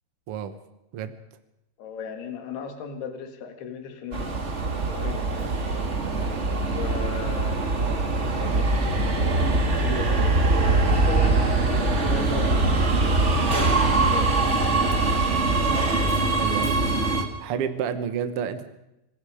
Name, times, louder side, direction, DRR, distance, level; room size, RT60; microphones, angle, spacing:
voice 1, 1.8-4.3 4.7-5.5 6.6-8.1 8.7-12.9 13.5-14.5, left 6 dB, 80° left, 6 dB, 4.0 m, -37 dB
Subway metro underground, 4.1-17.2, right 3 dB, 45° right, 0.9 m, -22 dB
voice 2, 16.3-16.8 17.4-18.7, right 8 dB, 80° right, 10 dB, 1.3 m, -29 dB
26.5 x 20.0 x 5.0 m, 0.89 s
omnidirectional pair, 4.5 m